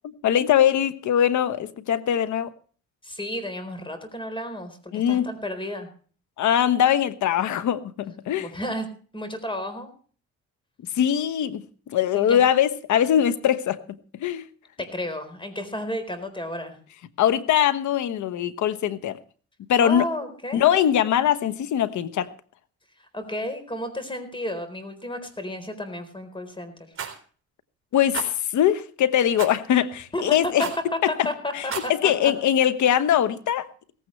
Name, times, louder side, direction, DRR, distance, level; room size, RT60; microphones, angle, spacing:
voice 1, 0.2-2.5 4.9-5.3 6.4-8.5 10.9-13.8 14.2-14.5 17.2-19.2 19.7-20.1 20.5-22.3 27.9-30.6 31.2-31.3 31.5-31.6 32.0-33.7, left 10 dB, 70° left, 1.2 m, -22 dB
voice 2, 3.0-5.9 8.4-8.9 9.1-9.9 12.1-12.4 14.8-16.8 19.8-20.6 23.0-26.9 30.1-30.7 31.1-32.3, left 1 dB, 15° left, 4.1 m, -32 dB
Rattle, 27.0-27.2 28.1-28.3 29.4-29.6 30.6-30.9 31.6-31.9, right 7 dB, 45° right, 3.9 m, -32 dB
17.0 x 15.5 x 3.3 m
cardioid pair, 90°, 30 cm